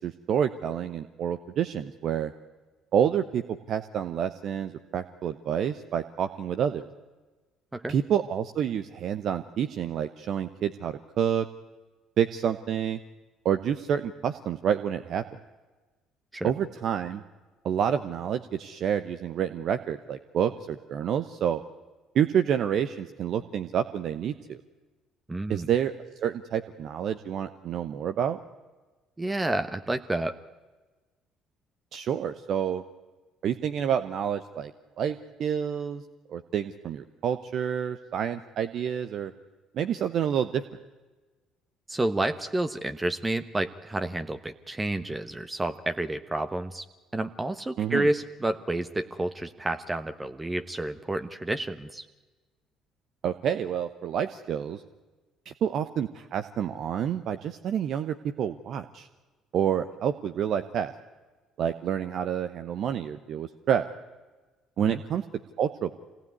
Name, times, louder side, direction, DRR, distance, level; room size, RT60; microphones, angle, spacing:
voice 1, 0.0-2.3 2.9-6.8 7.9-11.5 12.2-13.0 13.4-15.2 16.4-17.2 17.6-21.6 22.1-24.6 25.5-25.9 26.2-28.4 31.9-32.8 33.4-34.7 35.0-36.0 36.3-39.3 39.7-40.6 47.8-48.1 53.2-54.8 55.5-59.1 59.5-60.9 61.6-63.9 64.8-65.2 65.6-65.9, right 8 dB, 55° right, 10 dB, 0.9 m, -28 dB
voice 2, 25.3-25.7 29.2-30.4 41.9-46.8 47.1-52.1 64.8-65.0, right 2 dB, 15° right, 9 dB, 1.1 m, -30 dB
26.0 x 18.5 x 9.6 m, 1.3 s
hypercardioid pair, 55°, 0 cm